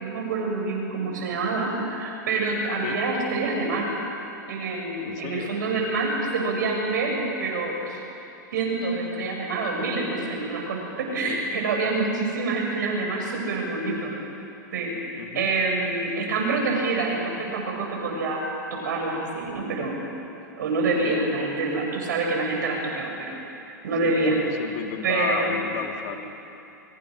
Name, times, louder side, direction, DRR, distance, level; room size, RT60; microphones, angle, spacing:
voice 1, 0.0-3.9 4.5-8.0 8.5-14.1 14.7-18.4 18.7-19.9 20.6-24.3 25.0-25.6, right 3 dB, 70° right, 0 dB, 7.0 m, -27 dB
voice 2, 5.0-5.5 11.3-11.5 15.1-15.5 21.0-21.2 24.0-26.2, left 9 dB, 55° left, 3 dB, 2.8 m, -33 dB
24.0 x 23.5 x 6.4 m, 2.8 s
hypercardioid pair, 105°, 10 cm